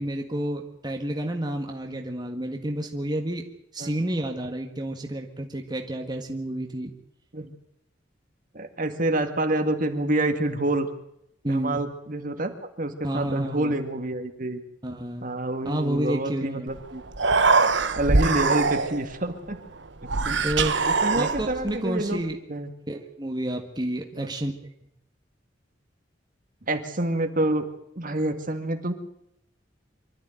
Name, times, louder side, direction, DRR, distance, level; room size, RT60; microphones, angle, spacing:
voice 1, 0.0-3.5 3.7-6.9 11.4-11.8 13.0-13.8 14.8-15.3 15.7-16.7 20.4-20.8 21.1-22.4 22.9-24.5, right 1 dB, 20° right, 3 dB, 1.8 m, -30 dB
voice 2, 8.5-10.9 11.5-14.6 15.2-17.0 18.0-19.6 20.0-20.4 21.0-22.2 22.5-22.7 24.1-24.3 26.7-27.7 28.0-28.9, right 1 dB, 45° right, 7 dB, 2.1 m, -27 dB
Human voice, 16.7-16.8 17.1-19.1 20.0-21.7, right 4 dB, 65° right, 1.2 m, -22 dB
25.0 x 13.0 x 9.2 m, 0.78 s
head